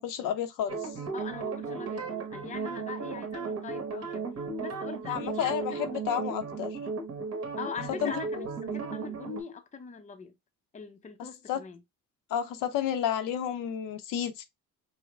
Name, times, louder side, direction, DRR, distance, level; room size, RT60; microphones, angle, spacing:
voice 1, 0.0-1.0 5.1-6.8 8.0-8.5 11.2-11.6 12.3-14.4, left 9 dB, 85° left, 0.7 m, -31 dB
sound 1, 0.7-9.4, right 5 dB, 50° right, 1.5 m, -35 dB
voice 2, 1.1-4.3 4.6-5.9 7.6-10.4 10.7-11.8, left 6 dB, 25° left, 0.6 m, -42 dB
4.8 x 2.1 x 3.1 m
cardioid pair, 115°, 31 cm